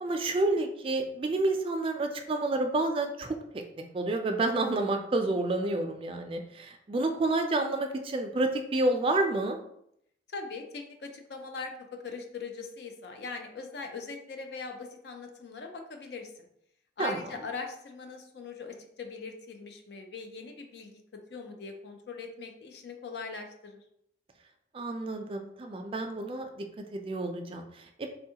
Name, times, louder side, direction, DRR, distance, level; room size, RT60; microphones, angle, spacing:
voice 1, 0.0-3.4 3.9-9.6 17.0-17.2 24.7-26.6 26.9-27.7, right 2 dB, 30° right, 5 dB, 0.3 m, -29 dB
voice 2, 10.3-16.5 17.0-21.0 21.3-23.8, left 4 dB, 65° left, 4 dB, 0.5 m, -41 dB
3.5 x 2.3 x 2.8 m, 0.73 s
head